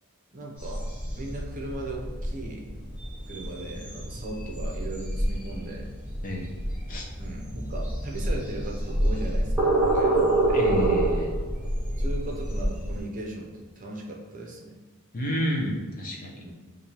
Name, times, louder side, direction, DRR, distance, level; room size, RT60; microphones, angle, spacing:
voice 1, 0.3-0.8 1.2-2.6 3.3-5.9 7.2-10.6 12.0-14.8 16.4-16.5, right 2 dB, 35° right, -1 dB, 0.6 m, -37 dB
sound 1, 0.6-13.0, right 1 dB, 10° right, 1.1 m, -27 dB
voice 2, 10.5-11.3 15.1-16.4, equal, 40° left, -1 dB, 0.7 m, -30 dB
6.9 x 2.6 x 2.9 m, 1.3 s
head